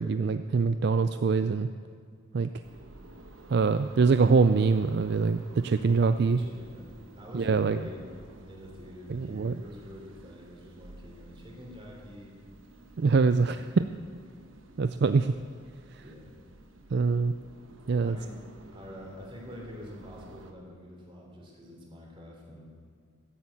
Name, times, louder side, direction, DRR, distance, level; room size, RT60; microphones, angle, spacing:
voice 1, 0.0-1.7 2.3-2.5 3.5-6.4 7.3-7.8 9.1-9.6 13.0-13.7 14.8-15.3 15.9-16.0 16.9-17.3 17.9-18.2, right 4 dB, 55° right, 10 dB, 0.4 m, -24 dB
sound 1, 2.6-20.5, right 1 dB, 85° right, 1.1 m, -52 dB
voice 2, 6.3-8.1 8.4-12.3 13.5-13.9 16.0-16.3 18.0-18.4 18.7-22.8, equal, 25° right, -1 dB, 3.3 m, -46 dB
15.0 x 8.6 x 8.4 m, 2.1 s
head